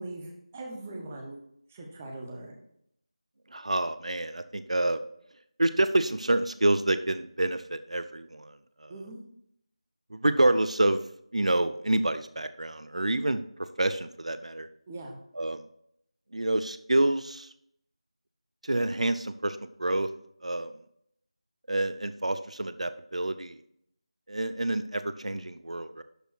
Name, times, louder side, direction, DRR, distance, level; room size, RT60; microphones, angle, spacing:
voice 1, 0.0-1.4 1.7-2.6 8.9-9.2 14.9-15.1, right 2 dB, 15° right, 1 dB, 1.1 m, -40 dB
voice 2, 3.5-5.0 5.6-8.9 10.1-11.0 11.3-13.4 13.8-14.7 15.3-15.7 16.3-17.5 18.6-20.1 20.4-20.7 21.7-23.6 24.3-26.0, right 1 dB, 75° right, 12 dB, 0.6 m, -27 dB
12.0 x 4.5 x 4.6 m, 0.73 s
figure-of-eight pair, 170°, 4 cm